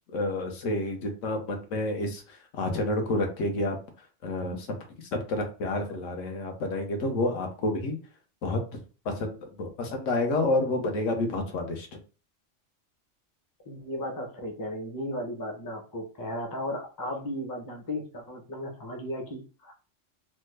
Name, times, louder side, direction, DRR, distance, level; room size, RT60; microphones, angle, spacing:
voice 1, 0.1-3.8 4.2-4.7 5.3-8.0 8.4-12.0, left 2 dB, 75° left, 4 dB, 1.1 m, -29 dB
voice 2, 13.7-19.7, left 1 dB, 25° left, 2 dB, 0.5 m, -35 dB
3.3 x 2.1 x 3.2 m, 0.36 s
omnidirectional pair, 1.3 m